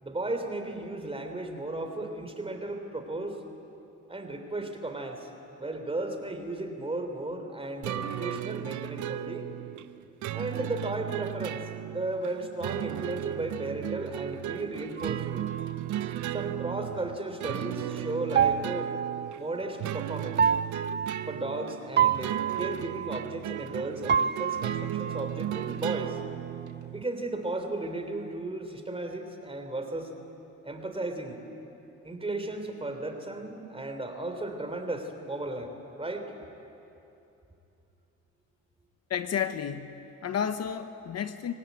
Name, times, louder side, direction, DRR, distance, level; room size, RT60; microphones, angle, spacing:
voice 1, 0.0-3.4 4.1-5.3 5.6-9.5 10.3-15.4 16.3-19.0 19.4-20.4 21.3-26.2 26.9-30.1 30.6-31.4 32.0-35.7 36.0-36.3, right 2 dB, 20° right, 5 dB, 3.4 m, -35 dB
sound 1, 7.8-27.0, right 12 dB, 75° right, 0.7 m, -35 dB
sound 2, 15.0-16.7 18.3-20.0 20.3-23.8 24.1-26.2, right 7 dB, 35° right, 0.6 m, -30 dB
voice 2, 39.1-41.5, left 8 dB, 55° left, 9 dB, 1.0 m, -32 dB
25.0 x 18.0 x 9.3 m, 2.8 s
cardioid pair, 90°, 30 cm